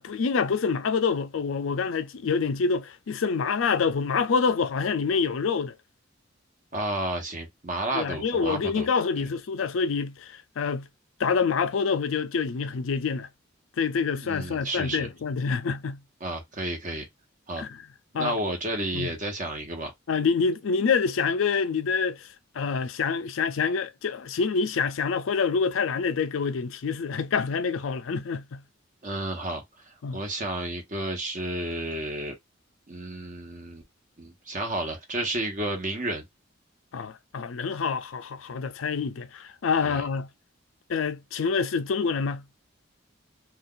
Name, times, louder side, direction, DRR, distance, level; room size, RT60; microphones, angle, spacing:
voice 1, 0.0-5.7 7.9-10.9 11.2-13.3 13.8-16.0 17.6-17.8 18.1-18.4 18.9-19.1 20.1-22.3 22.5-28.6 30.0-30.2 36.9-40.3 40.9-42.4, left 5 dB, 80° left, 0.4 m, -26 dB
voice 2, 6.7-8.9 9.2-9.3 14.2-15.1 16.2-17.1 17.5-17.6 18.1-19.9 29.0-32.3 32.9-33.8 34.2-36.2 39.8-40.1, right 1 dB, 40° right, 1.1 m, -31 dB
2.5 x 2.3 x 3.7 m
head